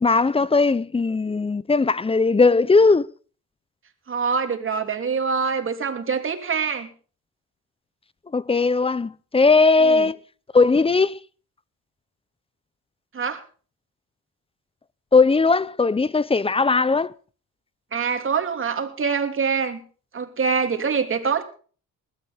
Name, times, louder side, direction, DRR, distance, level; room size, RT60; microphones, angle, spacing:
voice 1, 0.0-3.0 8.3-10.2 10.5-11.2 15.1-17.1, left 4 dB, 20° left, 0.7 m, -18 dB
voice 2, 4.1-6.9 9.8-10.1 13.1-13.4 17.9-19.8 20.1-21.4, right 5 dB, 45° right, 3.2 m, -25 dB
21.0 x 12.5 x 3.6 m
cardioid pair, 90°, 30 cm